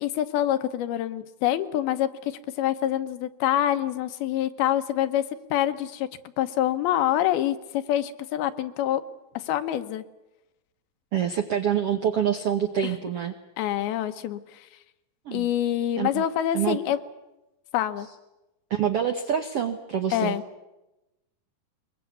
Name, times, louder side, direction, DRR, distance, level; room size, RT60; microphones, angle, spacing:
voice 1, 0.0-5.2 5.5-6.1 6.4-9.0 9.3-10.0 12.8-13.0 13.6-14.7 15.3-17.0 17.7-18.1 20.1-20.4, left 12 dB, 85° left, 9 dB, 2.9 m, -26 dB
voice 2, 11.1-13.3 15.2-15.5 16.0-16.2 16.5-16.8 18.7-20.4, right 8 dB, 75° right, 5 dB, 1.3 m, -26 dB
22.0 x 22.0 x 8.3 m, 0.99 s
omnidirectional pair, 4.3 m